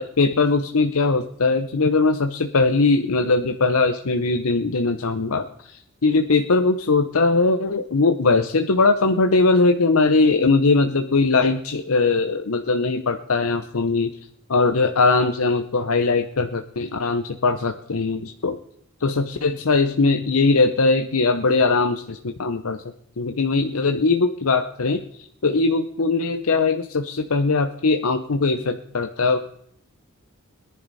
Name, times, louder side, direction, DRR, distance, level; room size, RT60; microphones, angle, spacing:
voice 1, 0.0-14.1 14.5-18.6 19.0-22.8 23.2-25.0 25.4-29.4, left 3 dB, 90° left, 7 dB, 0.8 m, -20 dB
21.0 x 10.5 x 4.1 m, 0.72 s
head